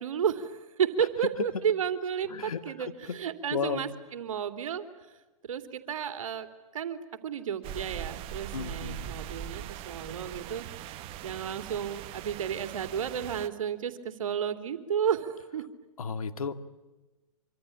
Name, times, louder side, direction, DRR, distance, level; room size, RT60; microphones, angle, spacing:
voice 1, 0.0-4.8 5.4-6.5 6.7-15.6, right 8 dB, 70° right, 9 dB, 3.1 m, -32 dB
voice 2, 2.3-3.1 3.5-3.9 8.5-9.1 16.0-16.7, left 6 dB, 80° left, 11 dB, 2.1 m, -34 dB
sound 1, 7.6-13.5, right 11 dB, 30° right, 1.4 m, -41 dB
26.0 x 25.5 x 8.7 m, 1.2 s
hypercardioid pair, 130°, 18 cm